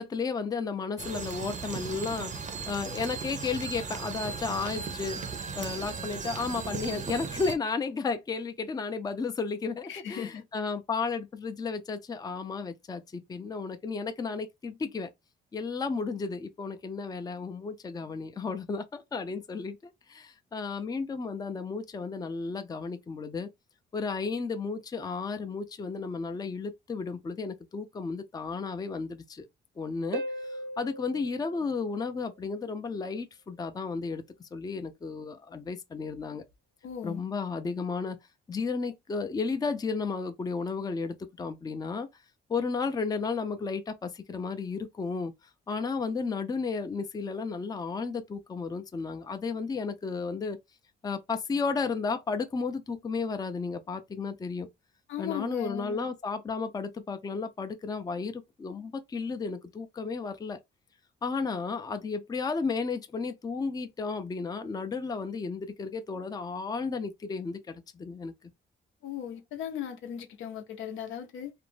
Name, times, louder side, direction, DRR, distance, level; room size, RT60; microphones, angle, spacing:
voice 1, 0.0-2.3 2.7-5.2 5.6-15.1 15.5-23.5 23.9-29.5 29.8-34.2 34.5-36.5 37.0-38.2 38.5-42.1 42.5-45.3 45.7-50.6 51.0-54.7 55.2-60.6 61.2-68.3, left 4 dB, 20° left, 0.4 m, -33 dB
sound 1, 1.0-7.6, right 5 dB, 40° right, 0.6 m, -37 dB
voice 2, 9.9-10.4 36.8-37.2 55.1-56.0 69.0-71.5, left 9 dB, 80° left, 0.6 m, -37 dB
Harp, 30.1-32.6 36.1-36.2, right 1 dB, 80° right, 0.7 m, -39 dB
2.5 x 2.1 x 3.1 m
cardioid pair, 90°, 20 cm